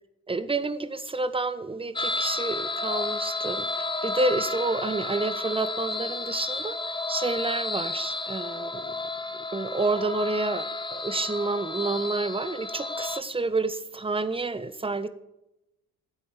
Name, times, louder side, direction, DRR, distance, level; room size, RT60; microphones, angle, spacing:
voice 1, 0.3-9.0 9.3-15.1, right 3 dB, 15° right, 13 dB, 1.3 m, -29 dB
sound 1, 2.0-13.2, left 3 dB, 10° left, 1.0 m, -32 dB
16.5 x 8.3 x 6.7 m, 0.89 s
figure-of-eight pair, 45°, 42 cm